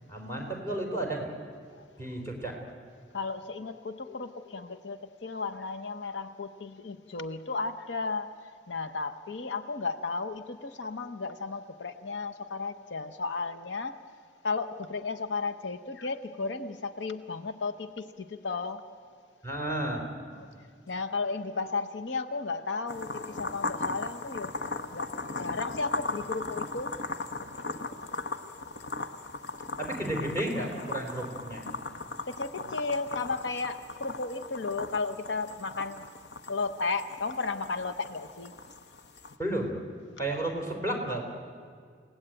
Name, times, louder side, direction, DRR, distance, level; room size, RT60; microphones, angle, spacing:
voice 1, 0.1-1.3 2.0-2.6 19.4-20.4 29.8-31.6 39.4-39.8 40.2-41.3, right 1 dB, 15° left, 1 dB, 4.0 m, -32 dB
voice 2, 3.1-8.3 8.7-14.0 14.4-18.8 20.4-20.5 20.9-24.5 24.9-25.1 25.4-26.9 27.4-27.7 28.4-28.6 32.2-36.1 36.5-38.5, left 4 dB, 85° left, 8 dB, 0.9 m, -34 dB
sound 1, 22.9-39.4, left 3 dB, 65° left, 1.1 m, -38 dB
30.0 x 17.5 x 9.0 m, 2.1 s
head